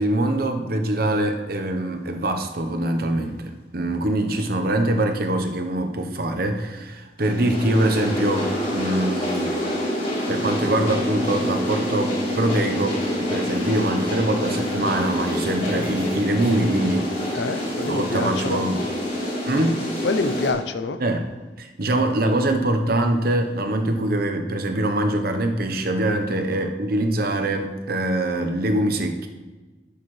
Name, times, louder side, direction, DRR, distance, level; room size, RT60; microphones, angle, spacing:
voice 1, 0.0-9.5 10.3-17.3 17.8-18.9 19.5-19.9 21.0-21.2 21.6-29.3, right 1 dB, 60° right, 5 dB, 1.0 m, -23 dB
sound 1, 7.2-20.5, left 1 dB, 50° left, 3.6 m, -27 dB
voice 2, 17.3-18.6 20.0-21.0, left 3 dB, 80° left, 10 dB, 0.6 m, -26 dB
17.0 x 6.6 x 3.3 m, 1.3 s
head